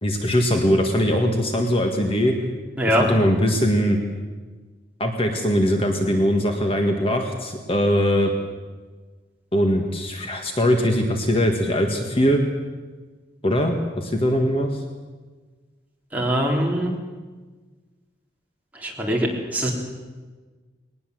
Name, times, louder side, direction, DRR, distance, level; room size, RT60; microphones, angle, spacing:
voice 1, 0.0-2.4 2.9-4.0 5.0-8.3 9.5-12.4 13.4-14.8, equal, 30° left, 3 dB, 1.8 m, -21 dB
voice 2, 16.1-16.9 18.8-19.7, equal, 10° right, -2 dB, 3.6 m, -22 dB
21.0 x 19.5 x 7.9 m, 1.4 s
head